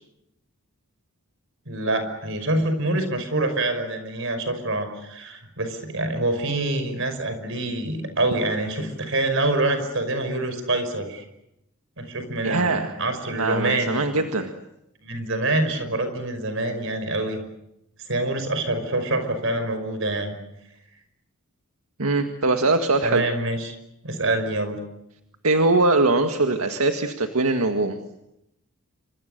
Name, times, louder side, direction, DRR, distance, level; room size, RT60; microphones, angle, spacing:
voice 1, 1.7-11.2 12.0-14.0 15.0-17.4 18.1-20.3 23.0-23.8 24.0-24.8, right 2 dB, 60° right, 8 dB, 5.5 m, -26 dB
voice 2, 12.4-12.9 13.3-14.5 22.0-23.2 25.4-28.0, right 2 dB, 80° right, 6 dB, 1.8 m, -22 dB
28.5 x 26.0 x 6.8 m, 0.84 s
head